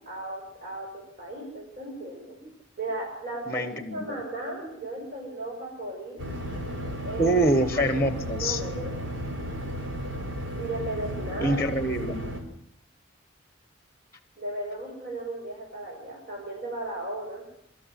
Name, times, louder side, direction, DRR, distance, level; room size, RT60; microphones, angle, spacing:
voice 1, 0.0-2.4 2.8-6.2 7.0-7.4 7.8-9.0 10.6-11.6 14.4-17.4, right 2 dB, 45° right, -3 dB, 6.5 m, -36 dB
voice 2, 3.5-4.2 7.2-8.6 11.4-12.3, right 1 dB, 15° left, 10 dB, 1.4 m, -25 dB
sound 1, 6.2-12.4, equal, 75° right, 4.0 m, -34 dB
24.5 x 13.5 x 9.2 m, 0.71 s
head